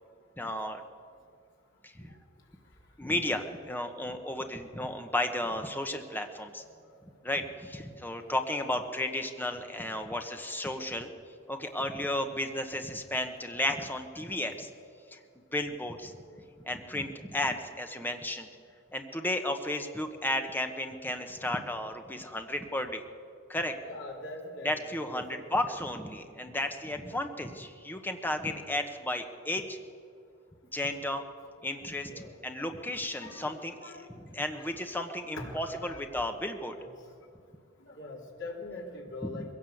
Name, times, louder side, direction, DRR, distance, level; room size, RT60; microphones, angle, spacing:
voice 1, 0.4-0.8 1.8-2.1 3.0-6.6 7.2-11.1 11.5-14.7 15.1-15.2 15.5-16.2 16.6-18.5 18.9-23.0 23.5-23.7 24.6-29.8 30.7-31.2 31.6-36.8 39.2-39.4, left 1 dB, 10° left, 6 dB, 1.2 m, -33 dB
voice 2, 23.9-25.4 28.4-28.5 32.1-32.3 33.2-34.1 34.6-34.7 35.4-36.0 36.8-36.9 37.9-39.5, left 2 dB, 60° left, -1 dB, 3.6 m, -43 dB
21.5 x 16.5 x 7.9 m, 2.3 s
head